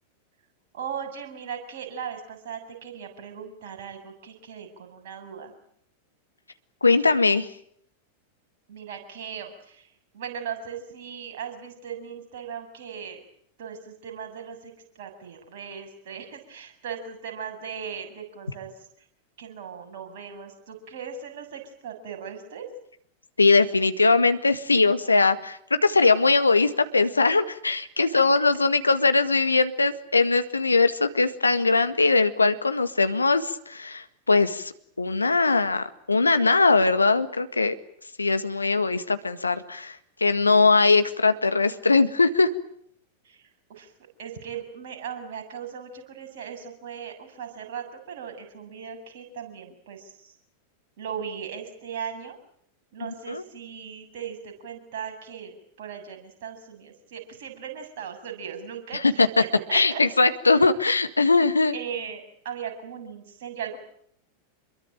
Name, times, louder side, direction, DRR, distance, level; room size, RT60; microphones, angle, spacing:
voice 1, 0.7-5.5 8.7-13.2 13.6-18.9 19.4-22.7 28.1-28.2 43.2-43.9 44.2-50.3 51.0-52.4 52.9-60.0 61.7-63.8, right 7 dB, 55° right, 4 dB, 7.4 m, -38 dB
voice 2, 6.8-7.5 23.4-34.7 35.0-37.7 38.2-42.5 53.3-53.4 58.9-59.3 59.7-61.7, left 3 dB, 80° left, 11 dB, 1.7 m, -21 dB
27.5 x 22.5 x 9.2 m, 0.68 s
figure-of-eight pair, 90°, 0 cm